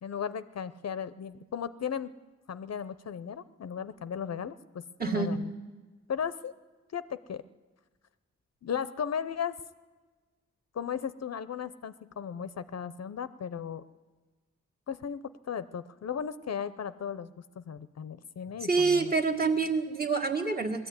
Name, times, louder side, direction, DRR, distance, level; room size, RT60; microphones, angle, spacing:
voice 1, 0.0-2.1 2.5-5.5 6.1-6.5 6.9-7.4 8.6-9.5 10.7-13.8 14.9-17.3 17.6-19.1, left 7 dB, 60° left, 14 dB, 0.6 m, -36 dB
voice 2, 5.0-5.4 18.6-20.9, right 4 dB, 30° right, 2 dB, 1.8 m, -27 dB
20.0 x 14.0 x 9.5 m, 1.3 s
wide cardioid pair, 180°, 29 cm